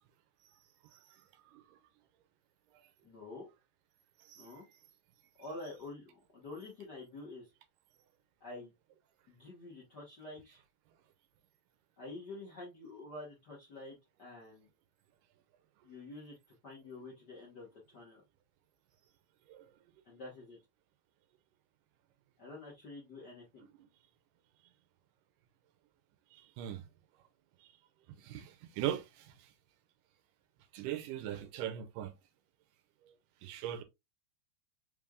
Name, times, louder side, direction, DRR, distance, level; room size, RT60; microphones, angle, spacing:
voice 1, 1.5-1.8 4.3-4.5 19.5-19.7 26.3-26.8 28.2-29.5 30.7-32.1 33.4-33.8, right 11 dB, 80° right, 2.1 m, -40 dB
voice 2, 3.0-3.5 4.3-4.6 5.4-7.5 8.4-8.7 9.3-10.6 12.0-14.7 15.8-17.7 17.9-18.2 20.0-20.6 22.4-23.7, left 2 dB, 55° left, 1.2 m, -48 dB
5.2 x 3.4 x 2.4 m
omnidirectional pair, 3.9 m